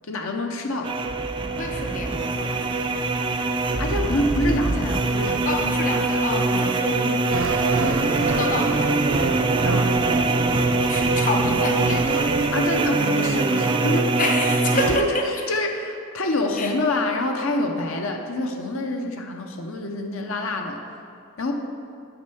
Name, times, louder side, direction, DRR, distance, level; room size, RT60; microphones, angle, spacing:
voice 1, 0.0-0.9 3.8-5.6 6.5-6.7 9.6-9.9 12.5-14.1 14.7-20.8 21.4-21.5, left 1 dB, 75° left, 3 dB, 0.8 m, -26 dB
sound 1, 0.8-15.0, right 3 dB, 25° right, 0.4 m, -23 dB
voice 2, 1.6-2.9 5.4-7.3 8.3-8.7 10.9-12.3 14.2-15.2 16.6-16.7, left 2 dB, 40° left, 2 dB, 0.7 m, -28 dB
sound 2, 7.3-13.3, right 3 dB, 70° right, 0.8 m, -29 dB
8.9 x 4.6 x 6.8 m, 2.6 s
head